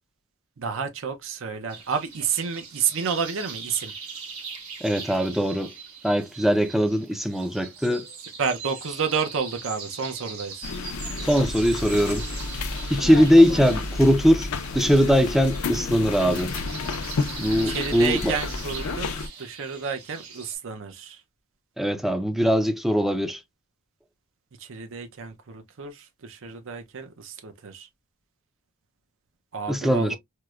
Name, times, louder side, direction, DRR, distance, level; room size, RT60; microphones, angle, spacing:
voice 1, 0.6-3.9 8.4-10.5 13.1-13.3 17.7-21.2 24.7-25.9 26.2-27.9 29.5-30.2, right 6 dB, 65° right, 0.6 m, -30 dB
sound 1, 1.7-20.6, right 5 dB, 85° right, 1.4 m, -41 dB
voice 2, 4.8-5.7 6.0-8.0 11.2-12.2 12.9-16.5 17.4-18.4 21.8-23.4 29.7-30.2, equal, ahead, 0.4 m, -21 dB
sound 2, 10.6-19.3, left 3 dB, 75° left, 0.5 m, -31 dB
4.5 x 2.0 x 2.3 m
head